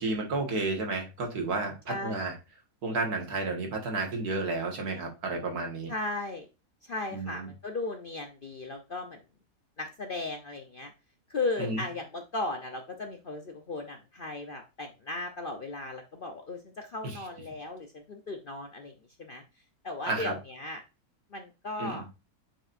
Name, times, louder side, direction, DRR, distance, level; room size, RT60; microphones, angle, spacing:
voice 1, 0.0-2.4 2.8-5.9 7.1-7.5 11.6-11.8 17.0-17.2 20.1-20.3 21.8-22.0, right 3 dB, 70° right, 3 dB, 2.1 m, -32 dB
voice 2, 1.9-2.3 5.9-6.5 6.8-9.2 9.8-10.9 11.3-18.9 19.2-19.4 19.8-20.8 21.3-22.0, left 2 dB, 45° left, 4 dB, 0.7 m, -36 dB
8.9 x 4.8 x 2.5 m, 0.29 s
omnidirectional pair, 1.7 m